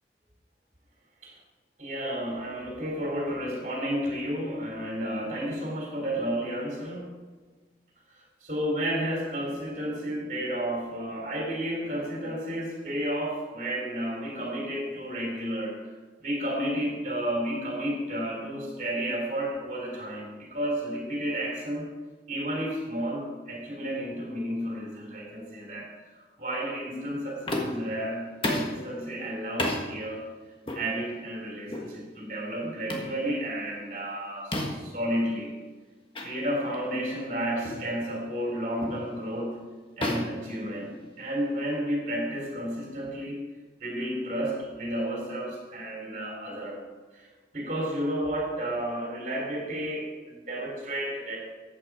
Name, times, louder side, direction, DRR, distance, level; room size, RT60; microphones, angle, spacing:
voice 1, 1.8-7.1 8.4-15.8 16.2-21.9 22.3-30.3 30.7-35.5 36.2-39.6 40.0-40.9 41.2-43.4 43.8-46.8 47.1-47.3 47.5-51.4, equal, 40° right, -3 dB, 3.3 m, -32 dB
sound 1, 27.5-27.9 28.4-28.8 29.6-29.8 30.7-30.9 31.7-31.9 32.9-33.1 34.5-34.9 36.1-36.3 36.7-36.9 37.6-37.9 38.8-39.1 40.0-41.2, left 1 dB, 30° left, 1.5 m, -31 dB
14.0 x 8.6 x 4.9 m, 1.3 s
head